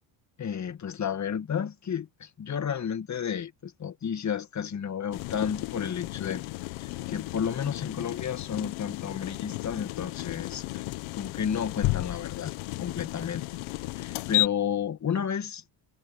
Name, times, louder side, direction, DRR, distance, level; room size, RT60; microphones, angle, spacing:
voice 1, 0.4-6.4 6.8-10.8 11.1-12.5 12.8-13.4 13.9-15.7, left 8 dB, 35° left, 2.0 m, -32 dB
sound 1, 5.1-14.5, left 21 dB, 80° left, 1.2 m, -33 dB
cardioid pair, 110°, 49 cm